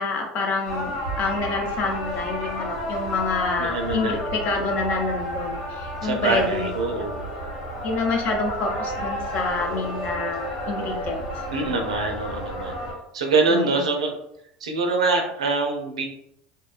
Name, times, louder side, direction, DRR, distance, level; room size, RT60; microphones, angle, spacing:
voice 1, 0.0-6.7 7.0-7.1 7.8-11.2 11.6-12.0 13.5-13.9, left 3 dB, 50° left, 2 dB, 0.6 m, -27 dB
sound 1, 0.6-12.9, equal, 90° left, 1.4 m, -31 dB
voice 2, 3.6-4.2 6.0-7.2 11.5-12.8 13.1-14.2 14.6-16.0, right 3 dB, 90° right, 3 dB, 0.5 m, -24 dB
2.6 x 2.2 x 2.4 m, 0.76 s
hypercardioid pair, 75°, 3 cm